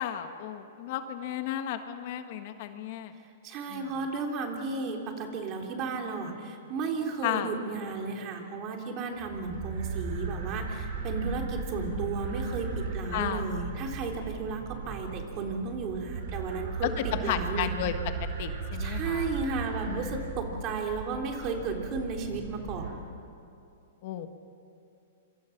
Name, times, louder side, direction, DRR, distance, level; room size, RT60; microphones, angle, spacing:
voice 1, 0.0-3.1 3.7-3.9 7.2-7.5 11.2-12.0 13.1-13.5 16.8-17.9 18.4-19.4 19.9-20.4 24.0-24.3, left 11 dB, 50° left, 8 dB, 1.6 m, -34 dB
voice 2, 3.4-17.7 18.8-23.1, right 4 dB, 35° right, 2 dB, 3.5 m, -34 dB
sound 1, 9.2-22.9, right 4 dB, 60° right, 4.9 m, -36 dB
26.0 x 24.5 x 6.0 m, 2.6 s
hypercardioid pair, 135°, 0 cm